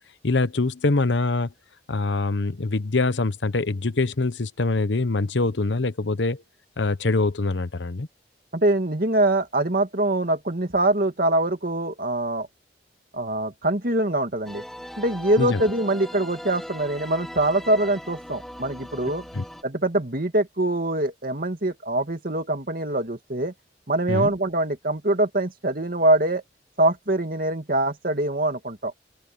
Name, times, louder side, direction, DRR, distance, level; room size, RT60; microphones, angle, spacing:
voice 1, 0.2-1.5 1.9-6.4 6.8-8.1 15.4-15.6 19.3-19.4 24.1-24.3, left 3 dB, 90° left, 1.0 m, -24 dB
voice 2, 8.5-12.5 13.1-14.6 15.0-19.2 19.6-23.5 23.9-26.4 26.8-28.9, right 1 dB, 50° right, 2.4 m, -24 dB
sound 1, 14.5-19.6, equal, ahead, 2.8 m, -39 dB
head